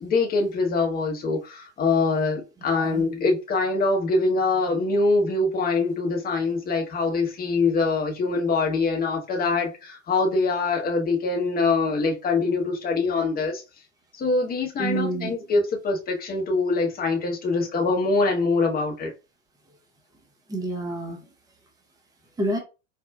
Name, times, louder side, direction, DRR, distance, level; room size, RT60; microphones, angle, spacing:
voice 1, 0.0-13.6 14.1-19.1, left 3 dB, 25° left, 1.0 m, -24 dB
voice 2, 2.7-3.0 14.8-15.3 20.5-21.2 22.4-22.6, right 2 dB, 10° right, 0.8 m, -28 dB
4.5 x 2.3 x 2.3 m
hypercardioid pair, 90°, 38 cm